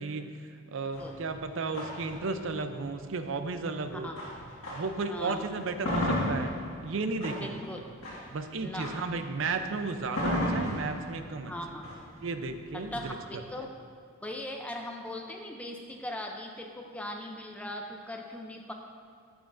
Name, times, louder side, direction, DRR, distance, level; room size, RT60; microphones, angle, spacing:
voice 1, 0.0-4.1 4.7-6.6 6.8-7.6 8.3-11.5 12.2-13.1, right 3 dB, 70° right, 8 dB, 0.5 m, -34 dB
sound 1, 0.9-5.1 5.5-13.4, left 1 dB, 90° left, 1.7 m, -35 dB
voice 2, 5.1-5.5 7.4-7.8 8.6-8.9 11.5-11.9 12.7-13.7 14.2-18.7, left 1 dB, 5° left, 2 dB, 0.4 m, -39 dB
11.5 x 6.2 x 2.5 m, 2.3 s
head